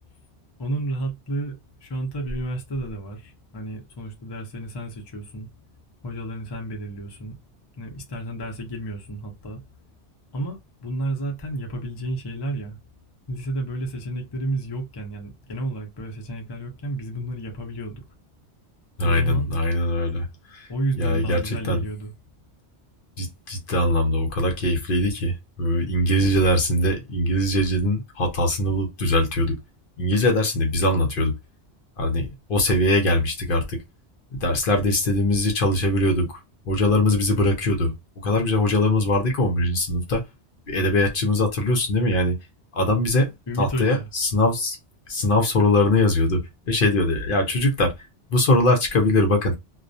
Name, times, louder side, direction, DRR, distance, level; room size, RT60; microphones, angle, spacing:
voice 1, 0.6-5.5 6.0-7.3 7.8-9.6 10.3-12.8 13.3-18.0 19.0-19.5 20.7-22.1 43.5-44.1, right 1 dB, 30° left, 0.5 m, -31 dB
voice 2, 19.0-20.3 20.5-20.7 21.0-21.8 23.2-29.6 30.0-31.3 32.0-33.8 34.3-36.4 36.7-37.9 38.2-40.2 40.7-42.4 42.7-43.3 43.6-44.8 45.1-47.9 48.3-49.5, left 1 dB, 55° left, 0.7 m, -21 dB
2.3 x 2.1 x 2.5 m
omnidirectional pair, 1.2 m